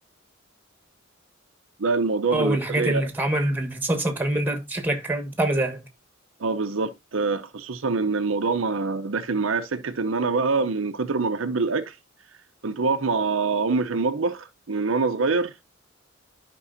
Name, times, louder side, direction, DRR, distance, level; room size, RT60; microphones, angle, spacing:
voice 1, 1.8-3.0 6.4-11.9 12.6-15.6, right 4 dB, 70° right, 0.7 m, -25 dB
voice 2, 2.3-5.8, right 1 dB, 10° right, 1.6 m, -25 dB
12.5 x 5.3 x 2.7 m
head